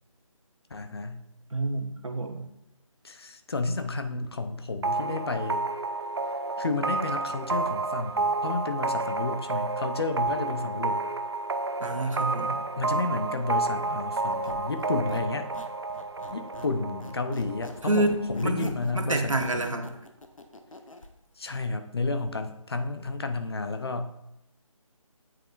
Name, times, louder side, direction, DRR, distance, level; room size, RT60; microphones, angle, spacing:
voice 1, 0.7-1.2 3.0-5.6 6.6-11.0 12.8-15.5 16.3-18.1 18.3-19.7 21.4-24.1, left 3 dB, 45° left, 8 dB, 0.7 m, -31 dB
voice 2, 1.5-2.4 11.8-12.6 17.8-19.9, right 2 dB, 65° right, 4 dB, 1.4 m, -28 dB
sound 1, 4.8-18.3, right 3 dB, 50° right, 0.5 m, -30 dB
Squeak, 14.2-16.8 17.0-21.1, left 2 dB, 70° left, 1.0 m, -45 dB
9.0 x 7.6 x 2.5 m, 0.85 s
figure-of-eight pair, 150°, 18 cm